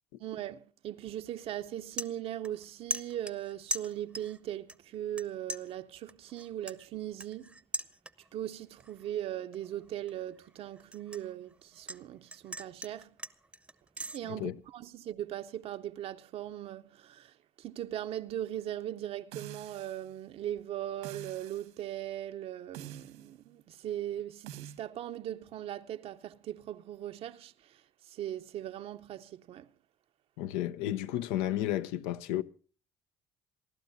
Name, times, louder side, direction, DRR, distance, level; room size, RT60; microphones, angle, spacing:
voice 1, 0.2-7.6 8.3-13.2 14.1-29.7, right 12 dB, 60° right, 0.6 m, -39 dB
sound 1, 1.0-1.3 1.6-2.6 2.9-4.4 4.7-5.2 5.5-8.4 8.8-9.1 9.5-12.0 12.3-14.2, equal, 10° right, 0.7 m, -40 dB
sound 2, 19.3-20.1 21.0-21.7 22.7-23.3 24.5-24.8, right 11 dB, 85° right, 1.5 m, -46 dB
voice 2, 30.4-32.4, left 13 dB, 80° left, 0.6 m, -32 dB
27.0 x 12.0 x 2.6 m
supercardioid pair, 65°, 11 cm